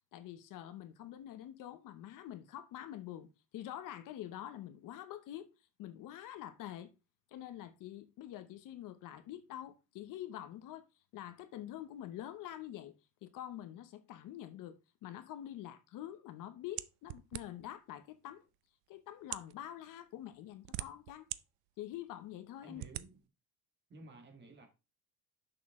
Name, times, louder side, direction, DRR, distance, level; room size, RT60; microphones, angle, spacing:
voice 1, 0.1-3.3 3.5-5.5 5.8-6.9 7.3-10.9 11.1-12.9 13.2-18.4 18.9-21.3 21.8-22.8, left 12 dB, 55° left, 0.9 m, -46 dB
sound 1, 16.8-17.8 18.5-18.6 19.2-19.6 20.3-21.4 21.9-22.0 22.8-23.1, right 17 dB, 70° right, 0.6 m, -42 dB
voice 2, 22.6-23.2 23.9-24.7, right 2 dB, 25° right, 1.9 m, -53 dB
6.8 x 6.2 x 3.6 m
cardioid pair, 170°, 39 cm